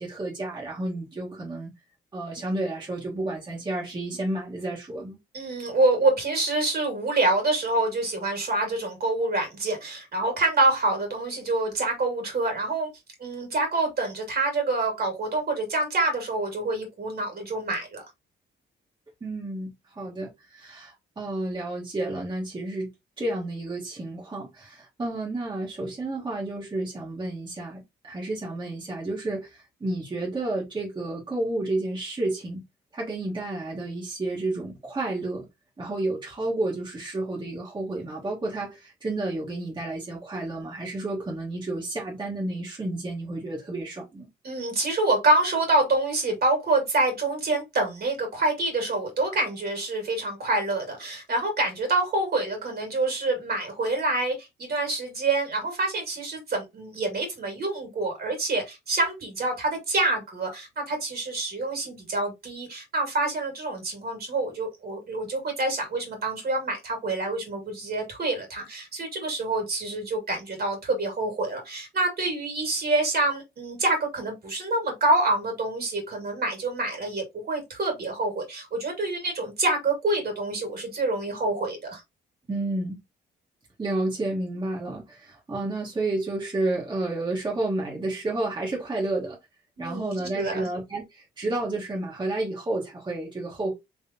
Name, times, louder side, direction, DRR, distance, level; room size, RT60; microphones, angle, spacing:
voice 1, 0.0-1.7 2.1-5.2 19.2-22.9 23.2-32.6 32.9-35.5 35.8-44.3 82.5-83.0 83.8-89.4 89.8-93.7, right 2 dB, 25° right, 1.4 m, -31 dB
voice 2, 5.3-12.9 13.2-18.0 44.4-82.0 89.8-90.7, right 2 dB, 50° right, 2.2 m, -26 dB
3.6 x 3.2 x 2.8 m
cardioid pair, 90°, 20 cm